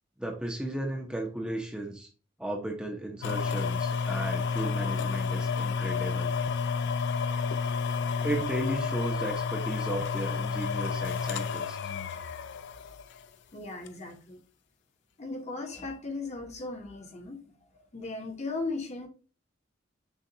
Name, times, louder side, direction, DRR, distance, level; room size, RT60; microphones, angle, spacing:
voice 1, 0.2-2.1 2.4-6.3 8.2-11.8, right 1 dB, 5° right, 0.6 m, -35 dB
sound 1, 3.2-13.2 13.9-14.0, left 5 dB, 65° left, 0.3 m, -30 dB
voice 2, 13.5-14.4 15.2-17.4 17.9-19.1, left 3 dB, 35° left, 0.8 m, -37 dB
6.4 x 2.2 x 2.7 m
head